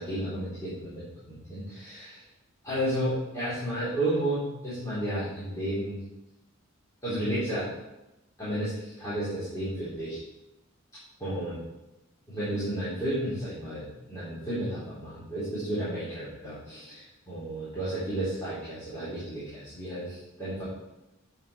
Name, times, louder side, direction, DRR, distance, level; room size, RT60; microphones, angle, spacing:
voice 1, 0.0-2.2 2.6-6.0 7.0-7.7 8.4-10.2 11.2-11.6 12.3-20.6, right 1 dB, 15° left, -13 dB, 4.0 m, -32 dB
11.0 x 7.5 x 4.4 m, 0.95 s
head